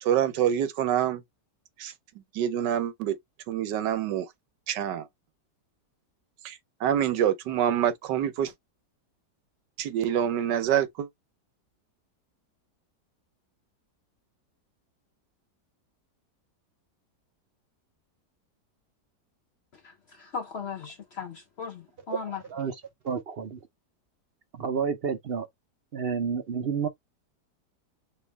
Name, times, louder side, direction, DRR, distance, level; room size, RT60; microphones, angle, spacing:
voice 1, 0.0-1.2 1.8-1.9 2.3-3.2 3.5-4.3 4.7-5.1 6.4-8.5 9.8-11.1, right 10 dB, 90° right, 1.4 m, -26 dB
voice 2, 19.8-22.4, left 6 dB, 55° left, 0.7 m, -37 dB
voice 3, 23.0-23.6 24.5-25.5 25.9-26.9, right 6 dB, 60° right, 0.6 m, -30 dB
4.5 x 2.6 x 3.3 m
omnidirectional pair, 1.8 m